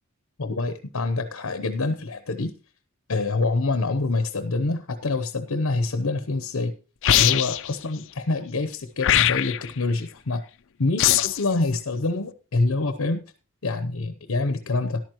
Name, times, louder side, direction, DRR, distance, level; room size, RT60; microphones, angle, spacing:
voice 1, 0.4-2.5 3.1-6.7 7.1-10.4 10.8-13.2 13.6-15.0, left 3 dB, 80° left, 10 dB, 0.9 m, -26 dB
sound 1, 7.0-7.7 9.0-9.7 11.0-11.5, left 12 dB, 65° left, 0.5 m, -20 dB
13.5 x 11.0 x 3.0 m, 0.34 s
head